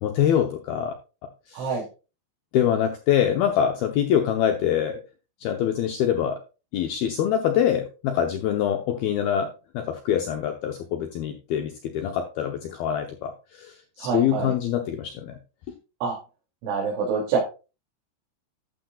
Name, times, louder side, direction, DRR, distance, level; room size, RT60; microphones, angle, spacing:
voice 1, 0.0-0.9 1.5-1.7 2.5-5.0 5.4-6.4 6.7-15.4, left 9 dB, 75° left, 5 dB, 2.3 m, -24 dB
voice 2, 1.5-1.8 14.0-14.5 16.0-16.2 16.6-17.5, right 5 dB, 80° right, -3 dB, 5.2 m, -26 dB
12.0 x 12.0 x 2.4 m, 0.32 s
omnidirectional pair, 5.5 m